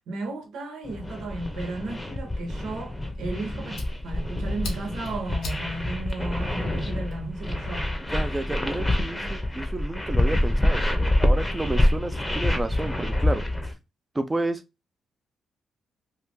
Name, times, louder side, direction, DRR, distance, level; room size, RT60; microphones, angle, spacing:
voice 1, 0.1-7.9, right 2 dB, 90° right, 1.0 m, -34 dB
sound 1, 0.8-13.7, left 1 dB, 10° left, 0.8 m, -26 dB
Fire, 3.1-7.7, left 2 dB, 80° left, 1.1 m, -43 dB
voice 2, 8.1-13.5 14.1-14.6, right 2 dB, 20° right, 0.5 m, -31 dB
2.8 x 2.5 x 3.5 m
cardioid pair, 85°, 0 cm